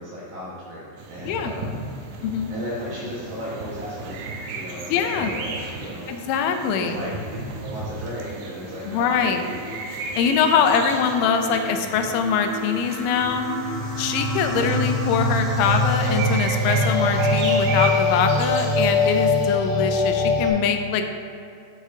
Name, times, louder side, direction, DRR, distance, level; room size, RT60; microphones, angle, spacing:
voice 1, 0.0-1.8 2.5-6.1 6.8-9.5 14.5-14.8, equal, 60° right, -8 dB, 2.3 m, -35 dB
sound 1, 1.0-19.5, right 3 dB, 80° right, 2.8 m, -35 dB
voice 2, 4.9-5.3 6.1-7.0 8.8-9.4 10.2-13.5 14.0-21.1, left 6 dB, 90° left, 6 dB, 2.9 m, -23 dB
sound 2, 9.1-20.5, left 2 dB, 70° left, 3.9 m, -24 dB
12.5 x 5.1 x 2.7 m, 2.5 s
omnidirectional pair, 5.2 m